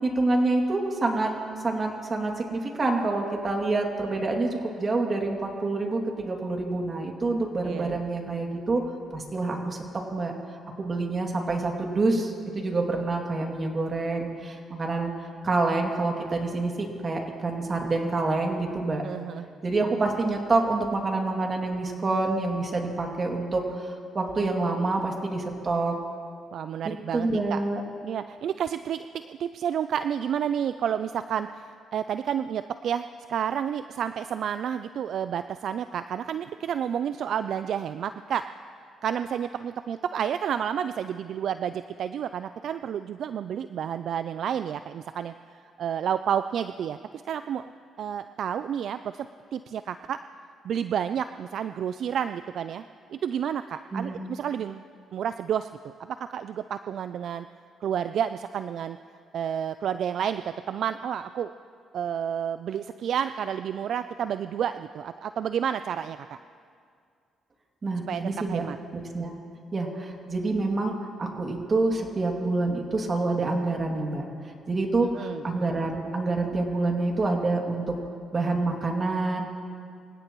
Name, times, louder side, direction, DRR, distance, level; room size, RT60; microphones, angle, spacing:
voice 1, 0.0-1.3 1.6-8.8 9.1-9.8 10.1-10.3 10.8-15.1 15.4-19.0 19.6-25.9 27.1-27.8 53.9-54.2 67.8-68.7 68.9-69.3 69.7-74.2 74.7-77.8 78.3-79.4, right 3 dB, 35° right, 1 dB, 2.5 m, -27 dB
voice 2, 7.6-8.0 19.0-19.5 26.5-27.6 28.0-33.0 33.3-38.4 39.0-47.0 47.3-47.7 48.0-49.3 49.5-50.2 50.6-52.8 53.1-54.8 55.1-55.7 56.0-57.5 57.8-59.0 59.3-61.5 61.9-66.4 68.0-68.2 68.5-68.8 75.1-75.4, right 8 dB, 65° right, 11 dB, 0.3 m, -30 dB
25.5 x 16.5 x 3.1 m, 2.3 s
cardioid pair, 90°, 0 cm